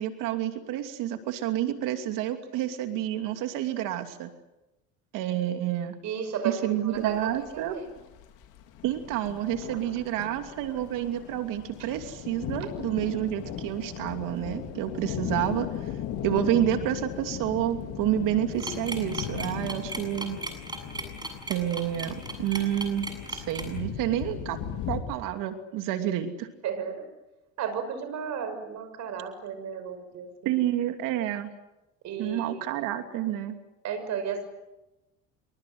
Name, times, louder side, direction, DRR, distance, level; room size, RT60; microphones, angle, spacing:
voice 1, 0.0-4.3 5.1-6.0 6.4-7.8 8.8-15.9 16.2-20.4 21.5-24.6 24.9-26.5 30.4-31.5 32.2-33.6, right 12 dB, 70° right, 7 dB, 2.8 m, -29 dB
voice 2, 6.0-7.8 9.7-9.8 26.6-27.0 27.6-30.5 32.0-32.6 33.8-34.4, right 7 dB, 55° right, 8 dB, 6.1 m, -33 dB
sound 1, 6.9-25.0, left 9 dB, 70° left, 4.6 m, -37 dB
sound 2, 18.6-23.8, right 2 dB, 10° right, 7.3 m, -36 dB
27.5 x 23.5 x 7.9 m, 0.98 s
cardioid pair, 120°, 33 cm